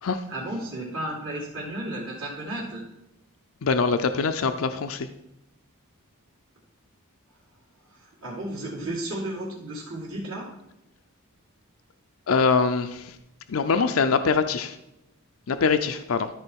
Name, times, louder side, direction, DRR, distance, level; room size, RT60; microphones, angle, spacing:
voice 1, 0.0-2.8 7.9-10.5, right 1 dB, 65° right, -9 dB, 2.5 m, -33 dB
voice 2, 3.6-5.1 12.3-13.2 13.5-14.8 15.5-16.3, left 5 dB, 65° left, 9 dB, 0.5 m, -23 dB
13.0 x 4.4 x 4.5 m, 0.87 s
head